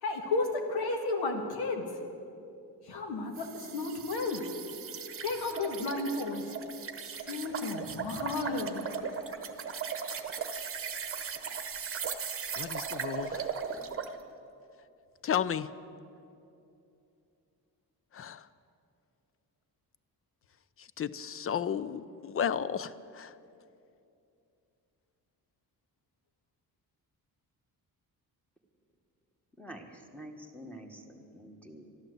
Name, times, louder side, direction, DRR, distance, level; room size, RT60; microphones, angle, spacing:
voice 1, 0.0-1.9 2.8-4.4 5.2-6.5 7.2-8.9 9.1-9.4, left 3 dB, 80° left, 2 dB, 1.9 m, -33 dB
sound 1, 3.3-14.2, right 6 dB, 35° right, 1.0 m, -38 dB
voice 2, 12.5-13.5 15.2-15.7 18.1-18.5 20.8-23.3, left 8 dB, 35° left, 16 dB, 0.5 m, -33 dB
voice 3, 29.6-31.9, right 1 dB, 5° left, 3 dB, 1.5 m, -47 dB
13.0 x 11.5 x 7.9 m, 2.6 s
cardioid pair, 125°, 38 cm